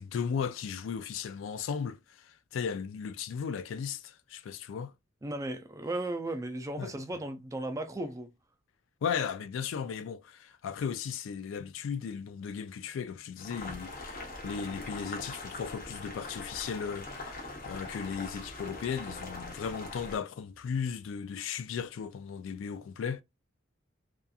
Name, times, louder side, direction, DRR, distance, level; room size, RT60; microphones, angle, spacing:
voice 1, 0.0-4.9 6.8-6.9 9.0-23.2, left 6 dB, 90° left, 0.3 m, -36 dB
voice 2, 5.2-8.3, right 1 dB, 15° right, 0.3 m, -35 dB
Boiling, 13.4-20.2, left 2 dB, 50° left, 0.8 m, -42 dB
2.8 x 2.4 x 2.2 m
head